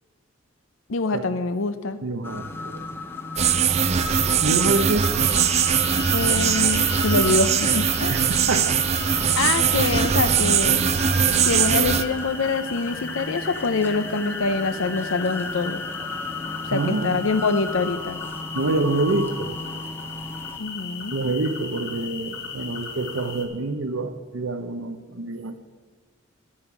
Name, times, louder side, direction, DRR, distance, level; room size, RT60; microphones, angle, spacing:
voice 1, 0.9-2.0 6.1-8.2 9.4-10.9 11.4-15.8 16.7-18.2 20.6-21.2, left 3 dB, 70° left, 11 dB, 0.6 m, -25 dB
voice 2, 2.0-2.8 4.4-5.1 8.1-8.2 8.5-8.8 16.7-17.2 18.5-19.5 21.1-25.6, right 2 dB, 70° right, 10 dB, 0.8 m, -26 dB
sound 1, 2.2-20.6, left 2 dB, 10° left, 0.7 m, -34 dB
sound 2, 3.4-12.0, right 8 dB, 30° right, 0.4 m, -21 dB
sound 3, 5.2-23.5, left 5 dB, 55° left, 1.7 m, -37 dB
11.5 x 8.6 x 5.9 m, 1.5 s
head